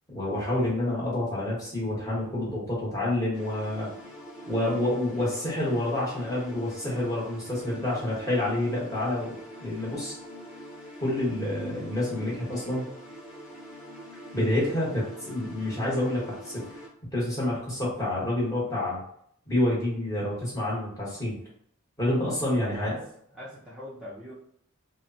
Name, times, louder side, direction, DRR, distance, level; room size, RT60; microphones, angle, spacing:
voice 1, 0.1-3.9 4.5-10.1 11.0-12.9 14.3-16.6 17.1-19.0 19.5-21.4 22.0-22.9, left 1 dB, 15° left, -7 dB, 1.0 m, -28 dB
sound 1, 3.3-16.9, equal, 35° left, 1.1 m, -44 dB
voice 2, 22.6-23.0 23.3-24.3, left 1 dB, 5° right, -9 dB, 0.4 m, -41 dB
3.0 x 2.1 x 2.6 m, 0.67 s
head